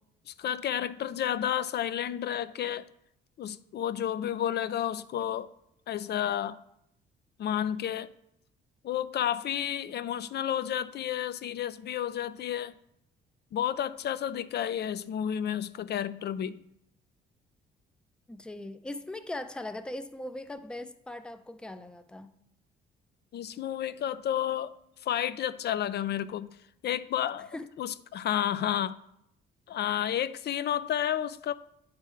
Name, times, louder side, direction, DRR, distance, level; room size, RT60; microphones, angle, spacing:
voice 1, 0.3-2.8 3.4-5.5 5.9-6.6 7.4-8.1 8.8-12.7 13.5-16.6 23.3-24.7 25.0-26.5 26.8-29.0 29.7-31.5, left 10 dB, 55° left, 0.4 m, -31 dB
voice 2, 18.3-22.3 27.5-27.7 29.9-30.0, left 1 dB, 5° left, 0.5 m, -40 dB
9.1 x 3.5 x 4.4 m
cardioid pair, 90°, 20 cm